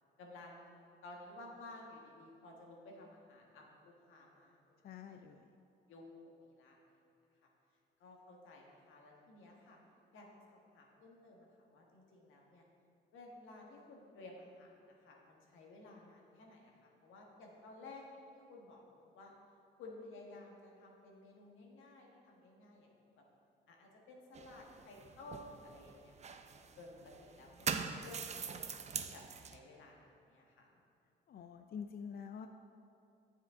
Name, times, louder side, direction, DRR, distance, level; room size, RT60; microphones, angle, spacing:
voice 1, 0.2-0.7 1.0-4.6 4.8-5.2 5.9-7.0 7.4-7.5 8.0-9.8 10.1-12.6 13.1-19.3 19.8-23.2 23.7-26.4 26.8-29.2 29.5-30.7, left 2 dB, 85° left, -1 dB, 1.5 m, -55 dB
voice 2, 4.8-5.5 31.3-32.5, left 7 dB, 50° left, 7 dB, 0.4 m, -47 dB
sound 1, 24.3-29.6, right 6 dB, 35° right, 0.5 m, -43 dB
9.5 x 7.3 x 3.6 m, 2.7 s
cardioid pair, 90°, 20 cm